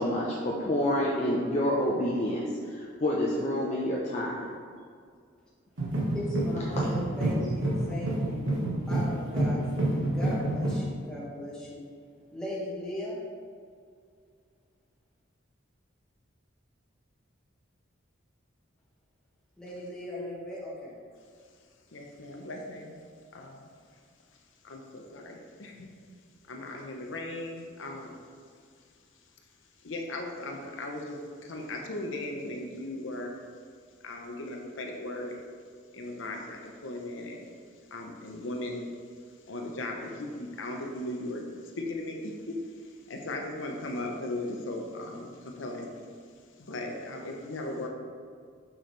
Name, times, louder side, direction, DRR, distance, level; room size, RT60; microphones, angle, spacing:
voice 1, 0.0-4.4, left 1 dB, 35° left, -4 dB, 0.7 m, -28 dB
sound 1, 5.8-10.9, right 1 dB, 75° right, 1.5 m, -28 dB
voice 2, 6.1-8.5 8.9-11.9 12.3-13.2 19.6-20.9, equal, 5° left, -8 dB, 1.7 m, -38 dB
voice 3, 21.9-23.0 23.3-23.6 24.6-25.9 26.5-28.2 29.8-33.4 34.0-35.4 35.9-37.5 37.9-39.0 39.3-46.0 46.6-47.9, left 2 dB, 80° left, 1 dB, 0.8 m, -37 dB
6.5 x 6.3 x 3.2 m, 2.1 s
head